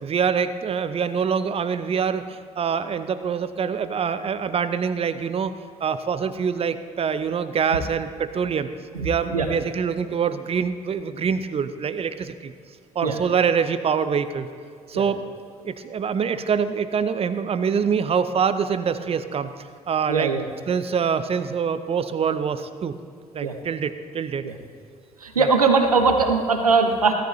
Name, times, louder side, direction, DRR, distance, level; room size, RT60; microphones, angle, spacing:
voice 1, 0.0-5.5 5.8-8.7 9.0-12.5 12.9-14.5 14.9-15.2 15.6-19.5 19.9-20.3 20.7-23.0 23.3-24.5 25.4-25.5, right 6 dB, 35° right, 12 dB, 0.8 m, -25 dB
voice 2, 20.1-20.5 23.4-23.5 24.4-24.5 25.2-27.1, right 4 dB, 85° right, 6 dB, 0.9 m, -20 dB
16.5 x 13.0 x 3.2 m, 2.2 s
figure-of-eight pair, 50°, 18 cm